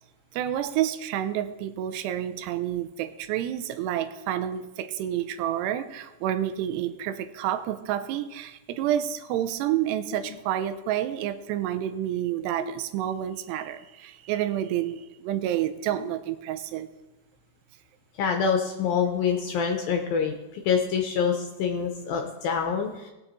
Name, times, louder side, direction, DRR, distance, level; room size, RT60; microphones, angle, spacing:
voice 1, 0.3-16.9, right 11 dB, 85° right, 10 dB, 2.8 m, -29 dB
voice 2, 18.2-23.1, left 6 dB, 75° left, 3 dB, 2.4 m, -26 dB
18.5 x 6.9 x 4.2 m, 1.0 s
omnidirectional pair, 4.8 m